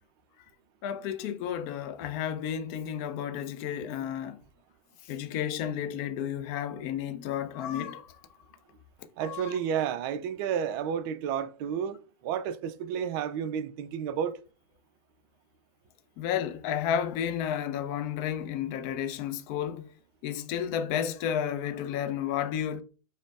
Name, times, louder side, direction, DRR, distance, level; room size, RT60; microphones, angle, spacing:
voice 1, 0.8-4.4 5.1-8.2 9.2-9.6 16.2-19.9 20.2-22.8, left 9 dB, 35° left, 0.4 m, -32 dB
voice 2, 9.2-14.4, right 8 dB, 40° right, 0.4 m, -31 dB
5.0 x 2.0 x 2.4 m
figure-of-eight pair, 105°, 19 cm